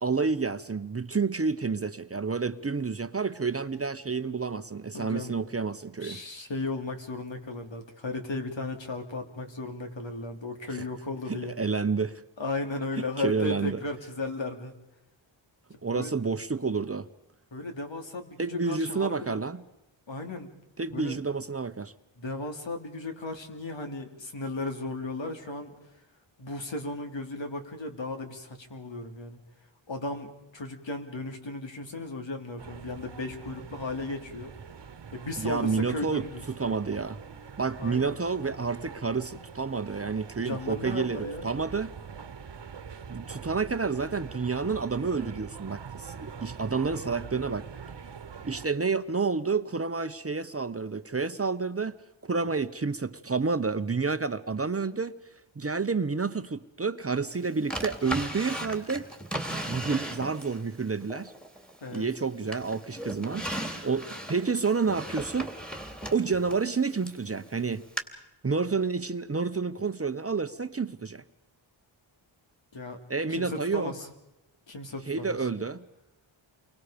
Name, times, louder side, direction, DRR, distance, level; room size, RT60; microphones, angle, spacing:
voice 1, 0.0-6.2 10.7-10.9 11.3-12.2 13.0-13.8 15.8-17.1 18.4-19.6 20.8-21.9 35.4-37.2 37.6-41.9 43.1-47.7 48.4-52.0 52.2-55.1 55.6-59.1 59.6-61.3 61.9-65.5 66.1-67.8 68.4-71.2 73.1-73.9 75.1-75.8, right 4 dB, 30° right, 0.9 m, -29 dB
voice 2, 4.9-5.3 6.0-11.5 12.4-14.8 15.9-16.1 17.5-19.4 20.1-20.5 20.9-21.2 22.2-25.7 26.4-29.4 29.9-34.5 35.1-36.4 37.8-38.2 40.4-41.5 61.8-62.0 72.7-73.0 73.3-74.1 74.7-75.4, left 2 dB, 65° left, 3.2 m, -35 dB
sound 1, 32.6-48.7, right 6 dB, 60° right, 1.3 m, -44 dB
Drawer open or close, 57.7-60.6 61.1-62.2 62.5-67.2 68.0-68.1, right 1 dB, ahead, 3.1 m, -36 dB
29.5 x 24.0 x 5.2 m
wide cardioid pair, 85°, 48 cm